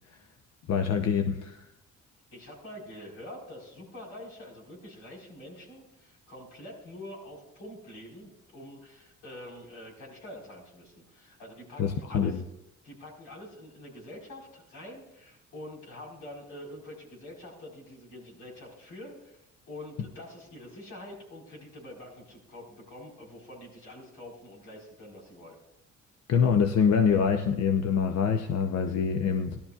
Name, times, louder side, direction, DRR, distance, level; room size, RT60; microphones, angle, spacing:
voice 1, 0.7-1.6 11.8-12.4 26.3-29.6, left 6 dB, 60° left, 6 dB, 0.7 m, -25 dB
voice 2, 2.3-12.4 12.8-25.6, left 1 dB, 90° left, -2 dB, 4.7 m, -46 dB
17.0 x 12.0 x 2.4 m, 0.87 s
cardioid pair, 90°, 30 cm